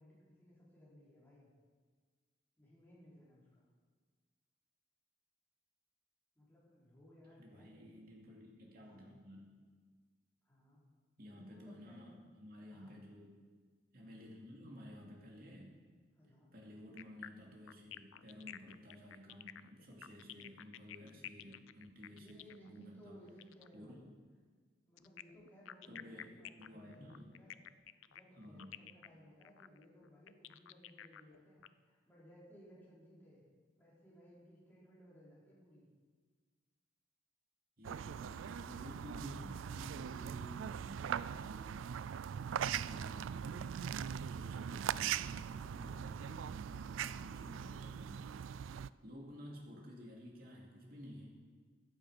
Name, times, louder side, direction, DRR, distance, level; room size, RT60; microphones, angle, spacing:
voice 1, 0.0-1.5 2.6-3.7 6.3-8.0 8.8-9.1 10.4-10.8 11.3-12.2 12.7-13.0 16.1-16.5 22.1-24.1 24.8-27.6 28.1-33.4 33.8-35.9, equal, 10° left, -8 dB, 4.1 m, -61 dB
voice 2, 7.4-9.7 11.2-13.3 13.9-15.7 16.5-22.4 22.7-23.2 23.7-24.1 25.9-26.3 26.6-27.3 28.4-28.7 37.8-42.1 42.5-43.9 44.2-48.3 49.0-51.4, equal, 50° right, -1 dB, 2.8 m, -53 dB
sound 1, 17.0-23.7 25.0-31.7, left 11 dB, 85° left, 0.4 m, -52 dB
sound 2, 37.8-48.9, right 8 dB, 85° right, 0.3 m, -41 dB
14.5 x 10.5 x 5.2 m, 1.5 s
head